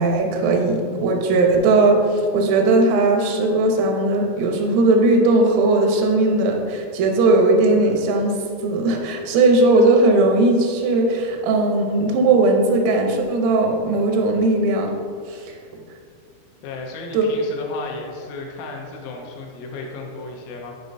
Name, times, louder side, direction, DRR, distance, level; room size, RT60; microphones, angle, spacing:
voice 1, 0.0-14.9 15.3-15.6 17.1-17.3, right 2 dB, 85° right, 2 dB, 3.4 m, -18 dB
voice 2, 16.6-20.8, left 3 dB, 80° left, 0 dB, 3.4 m, -34 dB
9.4 x 5.1 x 2.6 m, 2.2 s
omnidirectional pair, 5.8 m